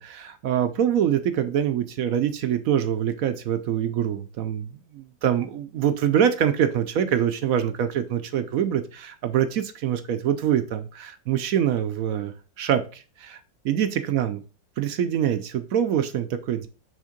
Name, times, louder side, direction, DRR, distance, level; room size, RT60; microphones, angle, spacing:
voice 1, 0.0-13.4 13.6-14.4 14.8-16.7, right 9 dB, 65° right, 10 dB, 0.9 m, -25 dB
6.4 x 3.6 x 5.1 m, 0.35 s
omnidirectional pair, 2.0 m